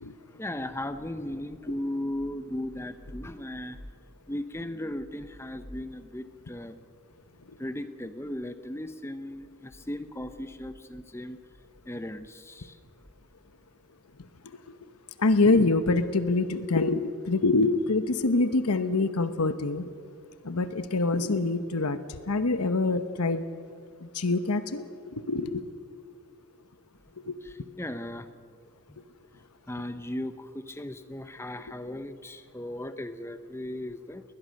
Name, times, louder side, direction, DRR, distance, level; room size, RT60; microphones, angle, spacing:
voice 1, 0.3-3.8 4.3-6.8 7.6-11.4 11.9-12.8 27.4-28.3 28.9-29.0 29.7-34.2, left 1 dB, 10° left, 11 dB, 0.7 m, -37 dB
voice 2, 15.2-19.9 20.4-22.0 22.3-23.4 24.0-24.9 25.1-25.6 27.3-27.4, left 3 dB, 90° left, 11 dB, 1.0 m, -25 dB
20.5 x 20.5 x 6.5 m, 2.2 s
head